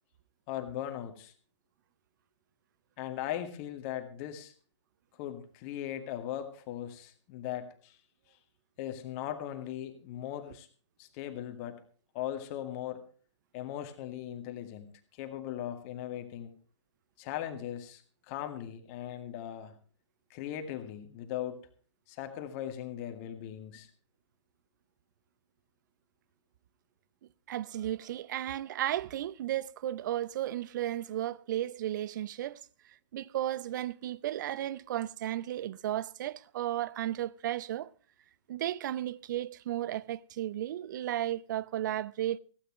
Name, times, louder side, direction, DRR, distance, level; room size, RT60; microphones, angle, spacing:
voice 1, 0.5-1.3 3.0-4.5 5.2-8.0 8.8-10.7 11.0-11.8 12.1-13.0 13.5-16.5 17.2-18.0 18.3-19.7 20.3-21.6 22.1-23.9, left 11 dB, 30° left, 2.2 m, -39 dB
voice 2, 27.5-32.6 33.1-37.9 38.5-42.4, right 12 dB, 40° right, 0.6 m, -34 dB
17.0 x 16.0 x 3.1 m
figure-of-eight pair, 130°, 15 cm